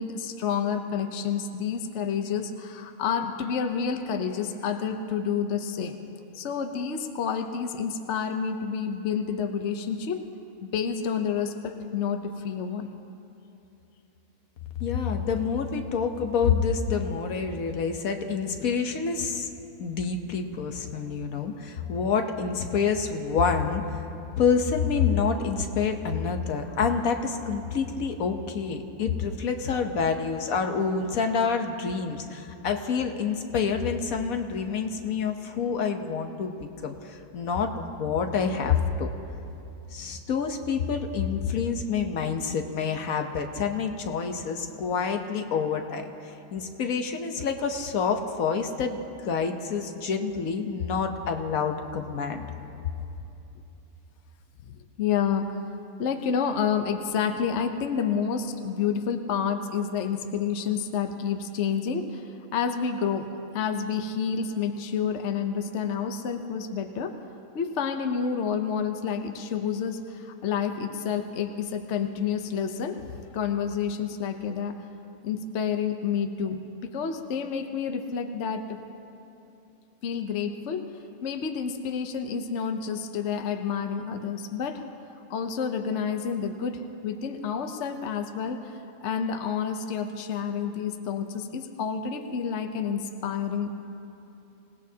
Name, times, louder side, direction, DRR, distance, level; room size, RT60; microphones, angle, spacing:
voice 1, 0.0-6.0 6.3-10.2 10.6-12.9 54.7-55.6 56.0-63.3 63.5-67.1 67.5-73.0 73.3-74.7 75.2-78.8 80.0-80.9 81.2-84.8 85.3-93.7, left 7 dB, 60° left, 6 dB, 1.0 m, -29 dB
voice 2, 14.8-19.5 19.8-24.0 24.4-39.1 39.9-52.4, left 6 dB, 75° left, 5 dB, 1.4 m, -27 dB
26.5 x 18.0 x 2.8 m, 2.9 s
omnidirectional pair, 1.5 m